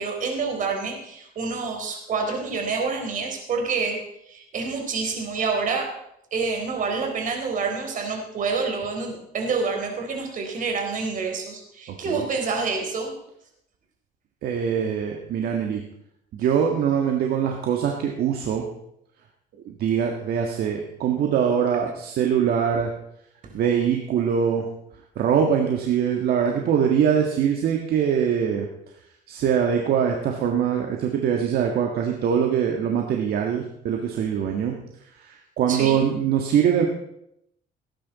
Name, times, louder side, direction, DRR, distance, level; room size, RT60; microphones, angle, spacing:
voice 1, 0.0-4.0 4.3-5.9 6.3-13.1 23.4-23.5 35.7-36.0, right 4 dB, 50° right, 2 dB, 3.9 m, -27 dB
voice 2, 11.9-12.2 14.4-15.8 16.3-18.7 19.7-22.9 23.5-24.7 25.1-28.7 29.3-34.7 35.2-36.9, right 8 dB, 65° right, 2 dB, 1.7 m, -23 dB
18.5 x 10.0 x 4.1 m, 0.78 s
cardioid pair, 110°, 17 cm